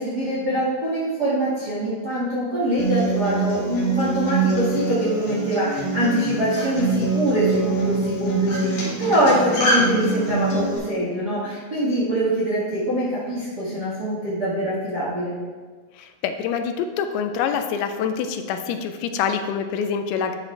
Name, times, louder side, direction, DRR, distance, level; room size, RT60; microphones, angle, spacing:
voice 1, 0.0-15.4, right 1 dB, 55° right, -9 dB, 1.1 m, -24 dB
Acoustic guitar, 2.8-10.8, right 3 dB, 55° left, 2.0 m, -24 dB
voice 2, 16.0-20.4, left 7 dB, 85° left, 7 dB, 2.5 m, -26 dB
10.5 x 4.8 x 3.2 m, 1.4 s
omnidirectional pair, 4.4 m